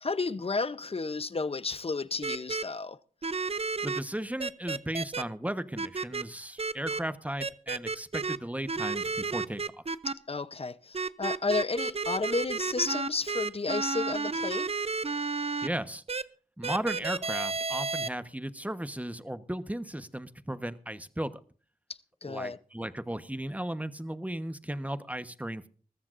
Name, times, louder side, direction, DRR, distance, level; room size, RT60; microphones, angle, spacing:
voice 1, 0.0-3.0 10.1-14.7 22.2-22.6, left 3 dB, 40° left, 0.8 m, -32 dB
sound 1, 2.2-2.6 3.2-4.0 4.4-5.2 5.8-6.2 6.6-7.0 7.4-8.4 8.7-10.1 10.9-15.7 16.1-16.2 16.6-18.1, right 4 dB, 45° right, 0.7 m, -32 dB
voice 2, 3.8-9.6 15.6-16.0 16.6-21.3 22.2-25.7, right 1 dB, 10° right, 1.2 m, -35 dB
21.5 x 14.5 x 2.6 m
wide cardioid pair, 55°, 15 cm